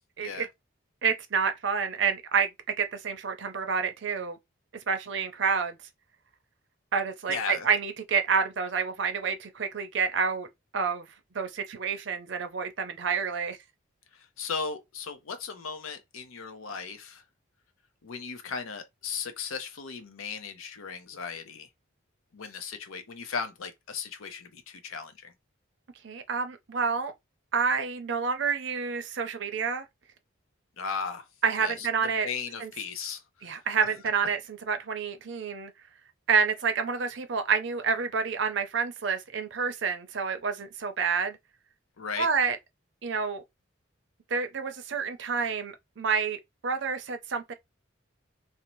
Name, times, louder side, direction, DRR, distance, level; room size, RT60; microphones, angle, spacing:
voice 1, 1.0-2.5 2.8-4.4 4.9-5.8 6.9-10.5 10.7-11.1 11.3-13.6 26.0-27.1 27.5-29.8 31.4-32.3 32.6-32.7 33.4-35.7 36.3-41.4 42.2-42.6 43.0-43.4 44.3-47.5, right 6 dB, 60° right, 0.5 m, -28 dB
voice 2, 7.3-7.7 14.1-17.2 18.0-21.7 22.3-25.3 30.8-31.3 31.6-31.9 32.2-33.2 42.0-42.3, left 5 dB, 90° left, 0.6 m, -36 dB
2.6 x 2.0 x 3.0 m
head